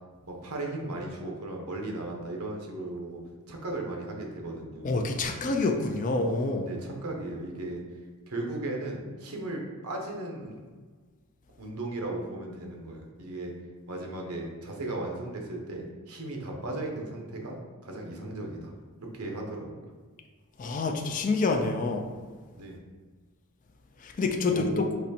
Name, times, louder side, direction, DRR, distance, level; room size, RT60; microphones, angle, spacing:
voice 1, 0.2-3.2 3.5-4.9 6.6-7.8 8.3-10.6 11.6-13.5 13.9-18.7 19.0-19.9 22.5-22.8 24.5-25.0, right 2 dB, 80° right, 1 dB, 0.9 m, -36 dB
voice 2, 4.8-6.7 20.6-22.0 24.0-24.9, left 3 dB, 35° left, 3 dB, 0.4 m, -27 dB
4.1 x 3.1 x 4.2 m, 1.5 s
head